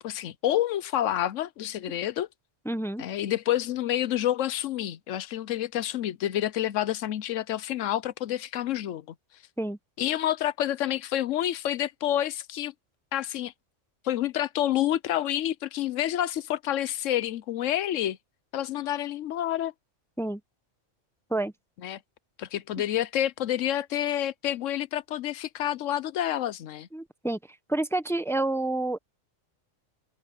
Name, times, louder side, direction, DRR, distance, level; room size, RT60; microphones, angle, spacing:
voice 1, 0.0-2.3 3.0-9.1 10.0-12.7 13.1-13.5 14.0-18.2 18.5-19.7 21.8-22.0 22.4-26.9, left 12 dB, 80° left, 1.0 m, -28 dB
voice 2, 2.6-3.0 9.6-9.8 20.2-20.4 21.3-21.5 26.9-29.0, right 2 dB, 5° left, 0.7 m, -29 dB
omnidirectional pair, 1.3 m